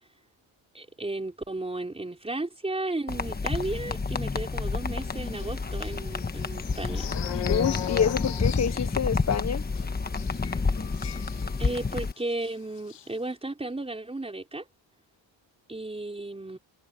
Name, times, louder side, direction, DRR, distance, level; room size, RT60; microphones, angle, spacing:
voice 1, 0.7-7.1 11.6-14.7 15.7-16.6, right 2 dB, 15° right, 4.5 m, -34 dB
sound 1, 3.1-12.1, left 4 dB, 20° left, 1.3 m, -29 dB
sound 2, 5.3-12.0 12.3-12.5 12.8-13.1, left 12 dB, 65° left, 1.6 m, -38 dB
voice 2, 7.5-9.6, left 7 dB, 35° left, 1.0 m, -27 dB
cardioid pair, 115°, 45 cm